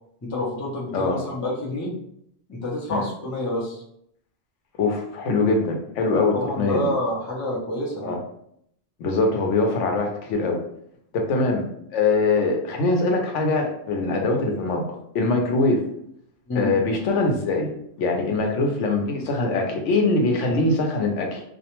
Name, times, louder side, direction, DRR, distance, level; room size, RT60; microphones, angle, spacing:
voice 1, 0.2-2.0 2.5-3.8 6.3-8.2 16.5-16.7, left 1 dB, 25° left, -4 dB, 0.4 m, -28 dB
voice 2, 0.9-1.3 2.9-3.1 4.8-6.8 8.0-8.2 9.0-10.6 11.1-11.7 11.9-14.8 15.1-15.8 16.6-17.7 18.0-21.4, left 3 dB, 90° left, 2 dB, 0.9 m, -22 dB
2.3 x 2.1 x 2.8 m, 0.71 s
omnidirectional pair, 1.2 m